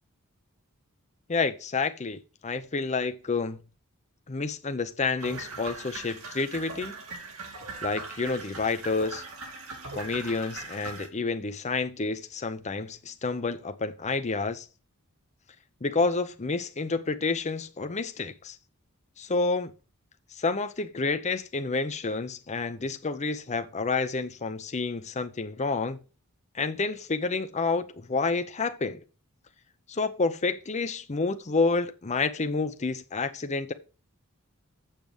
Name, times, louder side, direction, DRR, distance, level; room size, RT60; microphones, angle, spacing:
voice 1, 1.3-3.6 4.3-6.9 7.8-9.2 9.9-14.7 15.8-18.6 19.2-19.7 20.3-26.0 26.5-29.0 29.9-33.7, left 4 dB, 30° left, 0.7 m, -29 dB
sound 1, 5.2-11.1, right 3 dB, 70° right, 2.8 m, -40 dB
7.7 x 7.3 x 5.0 m
head